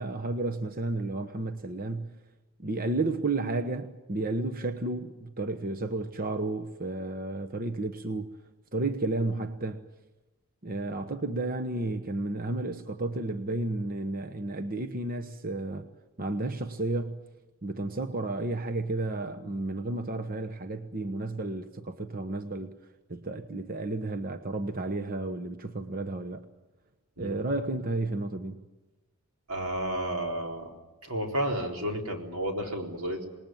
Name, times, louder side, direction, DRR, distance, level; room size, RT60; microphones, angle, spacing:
voice 1, 0.0-2.1 2.6-8.3 8.7-9.9 10.6-15.9 16.2-17.2 17.6-22.7 23.1-26.4 27.2-28.6, right 2 dB, 40° right, 6 dB, 1.0 m, -32 dB
voice 2, 29.5-30.7 31.0-33.3, right 1 dB, 85° right, 2 dB, 4.1 m, -32 dB
27.0 x 20.0 x 9.2 m, 1.1 s
head